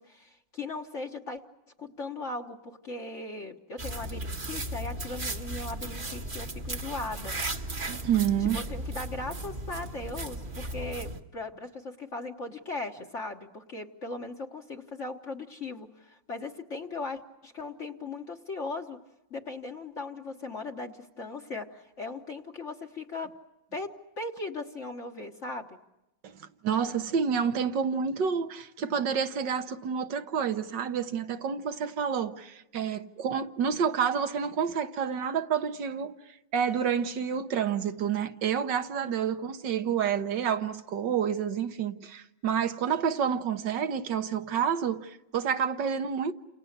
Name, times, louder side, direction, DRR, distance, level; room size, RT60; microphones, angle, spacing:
voice 1, 0.0-1.4 1.8-7.4 8.4-19.0 19.3-23.3 23.7-25.8 39.0-39.1, left 3 dB, 45° left, 1.5 m, -38 dB
sound 1, 3.8-11.2, right 1 dB, 30° right, 1.4 m, -36 dB
voice 2, 7.9-8.6 26.2-36.1 36.5-46.3, right 7 dB, 70° right, 1.8 m, -29 dB
30.0 x 28.5 x 6.6 m
omnidirectional pair, 2.0 m